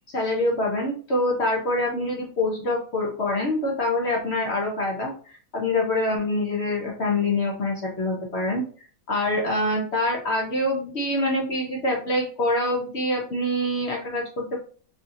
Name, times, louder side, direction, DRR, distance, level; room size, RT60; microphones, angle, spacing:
voice 1, 0.1-8.6 9.1-14.6, left 1 dB, 55° left, -1 dB, 0.7 m, -25 dB
4.8 x 2.8 x 2.6 m, 0.42 s
omnidirectional pair, 2.2 m